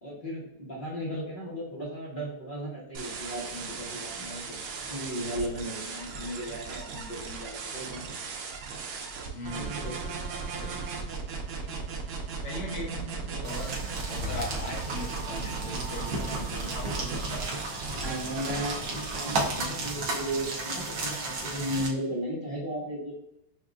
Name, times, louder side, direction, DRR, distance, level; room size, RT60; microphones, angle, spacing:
voice 1, 0.0-4.6 4.9-8.1 9.5-10.2 18.0-23.1, right 1 dB, 35° left, -4 dB, 0.8 m, -35 dB
sound 1, 2.9-19.5, right 4 dB, 85° right, 1.6 m, -37 dB
voice 2, 9.3-9.8 10.5-11.0 11.6-11.8 12.4-13.8 14.1-17.5, left 1 dB, 85° left, -1 dB, 1.9 m, -39 dB
sound 2, 13.4-21.9, right 2 dB, 60° right, 1.0 m, -34 dB
6.9 x 2.3 x 2.4 m, 0.79 s
omnidirectional pair, 2.3 m